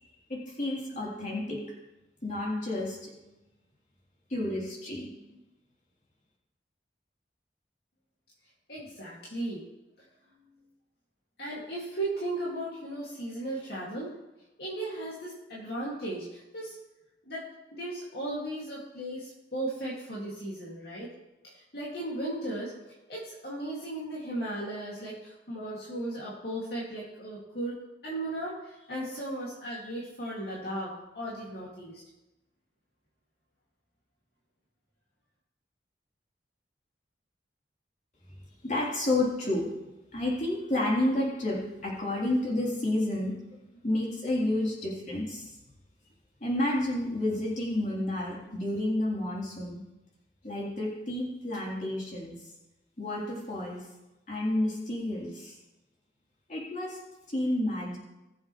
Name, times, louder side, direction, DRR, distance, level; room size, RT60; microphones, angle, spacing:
voice 1, 0.3-1.6 2.2-3.2 4.3-5.1 38.6-39.7 40.1-43.4 43.8-45.5 46.4-49.8 50.4-52.4 53.0-53.8 54.3-55.5 56.5-57.0 57.3-58.0, left 1 dB, 40° left, -4 dB, 3.5 m, -30 dB
voice 2, 8.7-9.6 11.4-14.1 14.6-16.7 17.3-21.1 21.4-22.7 23.1-27.8 28.0-32.0, right 1 dB, 60° left, -6 dB, 2.3 m, -36 dB
20.0 x 7.4 x 3.2 m, 1.0 s
head